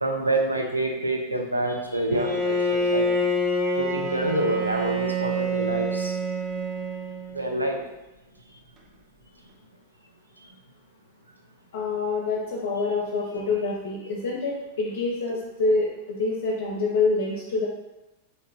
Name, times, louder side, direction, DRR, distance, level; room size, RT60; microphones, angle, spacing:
voice 1, 0.0-3.1 3.8-6.2 7.3-7.8, right 1 dB, 85° right, 2 dB, 0.4 m, -27 dB
Bowed string instrument, 2.1-7.5, equal, 30° right, 0.5 m, -27 dB
voice 2, 11.7-17.7, left 3 dB, 60° left, -3 dB, 0.5 m, -26 dB
3.1 x 2.9 x 2.4 m, 0.98 s
figure-of-eight pair, 90°, 0 cm